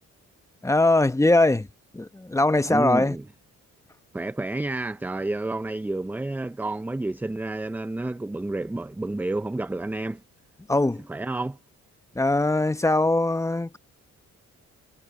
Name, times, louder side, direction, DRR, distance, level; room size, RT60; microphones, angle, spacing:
voice 1, 0.6-1.7 1.9-3.2 10.7-11.0 12.1-13.8, left 2 dB, 10° left, 1.0 m, -21 dB
voice 2, 2.7-3.2 4.1-10.2 11.1-11.6, right 2 dB, 5° right, 0.5 m, -30 dB
cardioid pair, 90°, 30 cm